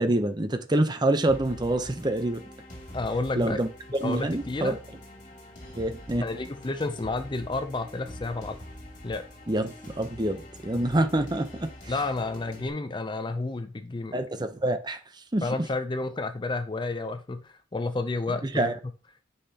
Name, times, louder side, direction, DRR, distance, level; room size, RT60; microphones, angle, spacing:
voice 1, 0.0-2.4 3.4-3.7 4.0-4.8 5.8-6.3 9.5-11.9 14.1-15.0 15.3-15.6 18.4-18.7, right 1 dB, 20° right, 0.7 m, -26 dB
sound 1, 1.3-12.7, left 1 dB, 45° left, 2.6 m, -44 dB
voice 2, 2.9-3.6 4.0-4.8 6.2-8.6 9.0-9.2 11.9-14.2 15.4-18.7, left 3 dB, 25° left, 0.5 m, -31 dB
9.8 x 5.7 x 2.9 m
head